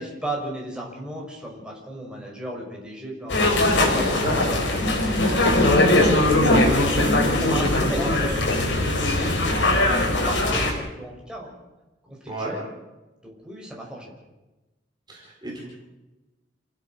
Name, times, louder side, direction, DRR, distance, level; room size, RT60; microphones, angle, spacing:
voice 1, 0.0-4.2 5.3-8.7 9.4-11.5 12.0-12.6 13.2-14.1, right 1 dB, 5° right, -2 dB, 5.6 m, -35 dB
sound 1, 3.3-10.7, left 2 dB, 70° left, 5.2 m, -20 dB
voice 2, 4.1-4.6 12.3-12.5 15.1-15.7, right 2 dB, 25° right, -2 dB, 4.4 m, -31 dB
28.5 x 16.0 x 6.5 m, 1.1 s
head